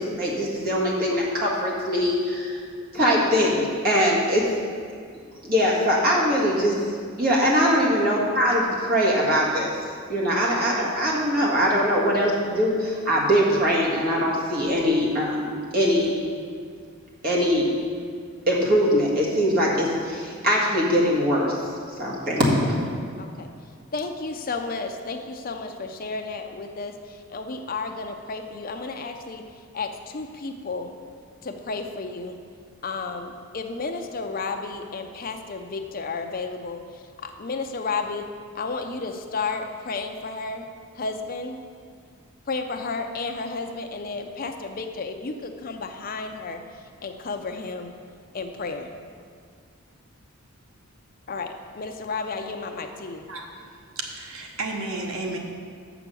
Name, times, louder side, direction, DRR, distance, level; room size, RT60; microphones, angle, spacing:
voice 1, 0.0-2.6 2.9-4.5 5.4-6.7 7.2-9.7 10.1-16.1 17.2-17.6 18.5-21.6 22.0-22.8, equal, 45° right, -4 dB, 1.8 m, -22 dB
voice 2, 23.2-23.5 23.9-26.9 27.3-29.4 29.7-30.9 31.4-32.4 32.8-36.8 37.2-38.3 38.6-40.7 41.0-41.6 42.5-46.6 47.0-47.9 48.3-48.9 51.3-53.2, left 4 dB, 45° left, 5 dB, 0.6 m, -32 dB
voice 3, 54.0-55.4, right 2 dB, 80° right, 1 dB, 1.1 m, -32 dB
6.9 x 6.0 x 6.8 m, 2.1 s
head